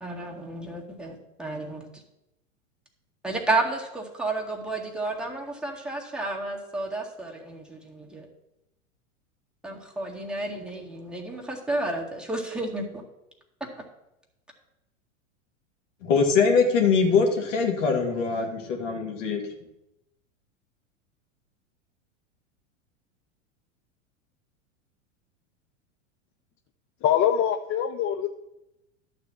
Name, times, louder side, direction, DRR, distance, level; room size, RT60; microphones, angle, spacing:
voice 1, 0.0-2.0 3.2-8.3 9.6-13.0 13.8-13.9, right 2 dB, ahead, -3 dB, 1.9 m, -31 dB
voice 2, 16.0-19.4, left 5 dB, 70° left, 2 dB, 2.4 m, -22 dB
voice 3, 27.0-28.3, left 9 dB, 35° left, 8 dB, 0.6 m, -23 dB
11.5 x 4.2 x 7.5 m, 0.90 s
hypercardioid pair, 100°, 39 cm